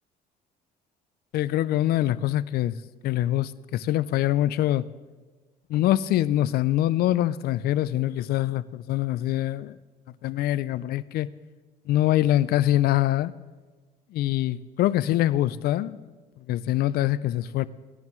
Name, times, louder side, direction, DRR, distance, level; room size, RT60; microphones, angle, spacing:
voice 1, 1.3-2.7 3.0-4.8 5.7-9.8 10.2-11.3 11.9-13.3 14.1-16.0 16.5-17.7, left 13 dB, 65° left, 0.4 m, -24 dB
17.0 x 10.5 x 3.1 m
cardioid pair, 110°, 17 cm